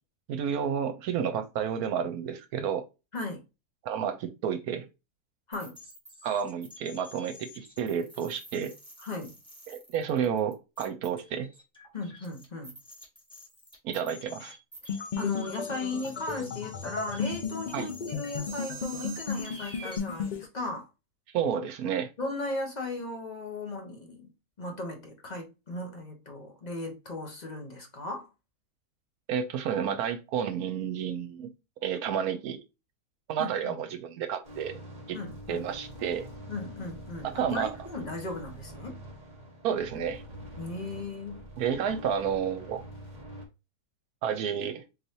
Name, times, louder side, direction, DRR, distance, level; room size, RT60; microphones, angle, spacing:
voice 1, 0.3-2.9 3.8-4.8 6.2-8.7 9.7-11.5 13.8-14.5 17.7-17.9 21.3-22.1 29.3-31.5 31.8-32.6 33.3-34.8 35.1-35.2 35.5-36.3 37.2-37.7 39.6-40.2 41.6-42.8 44.2-44.8, right 8 dB, 75° right, 1.2 m, -30 dB
sound 1, 5.5-20.0, equal, 5° left, 1.5 m, -47 dB
voice 2, 9.0-9.4 11.9-12.8 15.2-20.9 22.2-24.3 24.6-28.3 33.4-33.8 35.1-35.7 36.5-39.0 40.6-41.5, left 2 dB, 35° left, 0.9 m, -36 dB
sound 2, 14.9-20.5, left 5 dB, 70° left, 0.4 m, -35 dB
sound 3, 34.4-43.4, equal, 30° right, 1.6 m, -45 dB
4.3 x 3.3 x 2.7 m
omnidirectional pair, 1.7 m